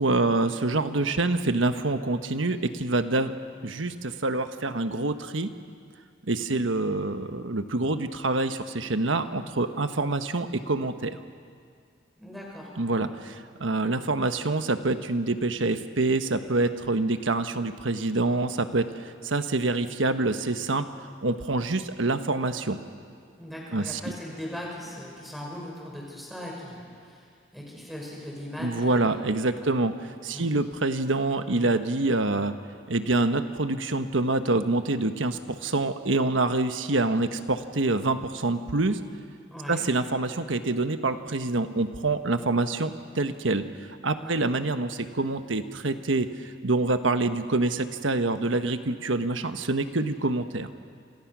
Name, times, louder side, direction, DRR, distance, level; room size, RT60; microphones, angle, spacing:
voice 1, 0.0-3.3 3.6-5.5 6.3-11.2 12.8-20.8 21.2-22.8 23.7-24.0 28.6-32.5 32.9-39.0 39.7-43.6 44.0-50.7, right 2 dB, 80° right, 8 dB, 1.3 m, -26 dB
voice 2, 12.2-12.7 23.4-29.2 30.3-30.5 39.5-39.8 44.2-44.4, left 1 dB, ahead, -3 dB, 6.2 m, -39 dB
28.5 x 27.5 x 6.2 m, 2.2 s
head